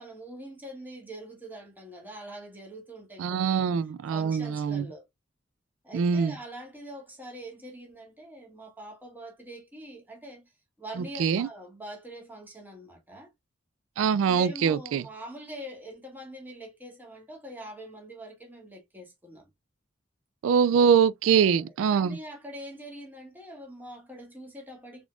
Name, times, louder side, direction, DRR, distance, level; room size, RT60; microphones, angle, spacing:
voice 1, 0.0-5.1 5.8-10.5 10.8-13.3 14.2-19.5 21.3-21.6 21.9-25.0, right 1 dB, 10° right, 1.4 m, -44 dB
voice 2, 3.2-4.8 5.9-6.3 11.2-11.5 14.0-15.0 20.4-22.2, right 7 dB, 90° right, 0.3 m, -23 dB
4.0 x 3.0 x 2.2 m
head